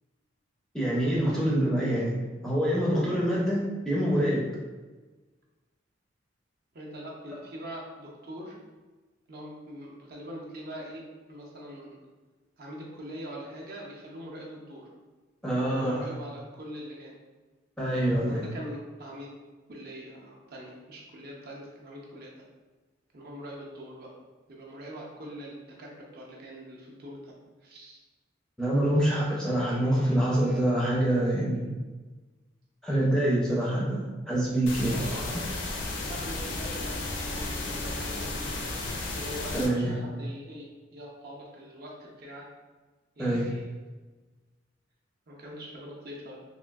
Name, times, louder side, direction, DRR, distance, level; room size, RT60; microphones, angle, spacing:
voice 1, 0.7-2.1 2.4-4.5 15.4-16.1 17.8-18.5 28.6-31.8 32.8-35.3 39.5-39.9 43.2-43.5, right 1 dB, 5° left, -6 dB, 0.4 m, -26 dB
voice 2, 6.7-8.6 9.3-12.0 12.6-14.9 15.6-17.2 17.9-19.3 19.7-22.3 23.1-24.1 24.5-27.3 27.6-28.0 34.9-35.7 36.0-37.0 37.3-38.6 39.1-42.5 43.2-43.7 45.3-46.4, equal, 50° right, -3 dB, 0.5 m, -43 dB
sound 1, 34.7-39.7, left 2 dB, 70° left, 0.4 m, -34 dB
Bowed string instrument, 35.6-39.7, left 1 dB, 75° right, 0.8 m, -47 dB
3.0 x 2.5 x 2.3 m, 1.3 s
head